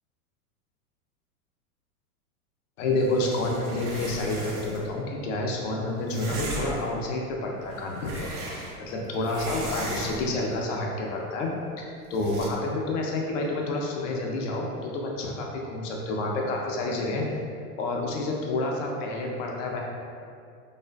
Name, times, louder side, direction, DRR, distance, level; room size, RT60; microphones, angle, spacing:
voice 1, 2.8-8.3 8.8-11.5 11.8-17.2 17.8-19.8, left 2 dB, 55° left, -1 dB, 0.6 m, -29 dB
sound 1, 3.0-4.9 6.1-6.9 7.6-8.9 9.2-10.4 12.1-12.5, right 1 dB, 70° right, 0.7 m, -37 dB
2.4 x 2.4 x 2.2 m, 2.3 s
hypercardioid pair, 115°, 46 cm